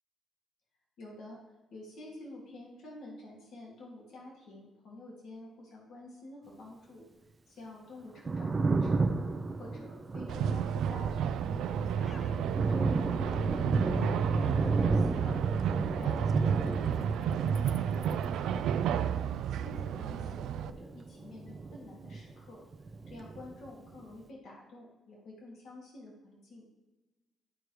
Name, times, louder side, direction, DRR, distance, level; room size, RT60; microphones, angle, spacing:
voice 1, 1.0-1.4 1.7-7.0 7.5-9.1 9.6-12.3 12.7-15.4 16.0-19.1 19.5-20.4 20.7-26.6, left 2 dB, 70° left, -4 dB, 2.3 m, -49 dB
Thunder, 8.0-22.5 22.7-24.0, right 3 dB, 30° right, 0.6 m, -33 dB
sound 1, 10.3-20.7, right 8 dB, 85° right, 0.4 m, -31 dB
sound 2, 11.2-18.3, left 2 dB, 35° left, 0.6 m, -47 dB
12.5 x 4.7 x 3.3 m, 1.1 s
cardioid pair, 90°, 0 cm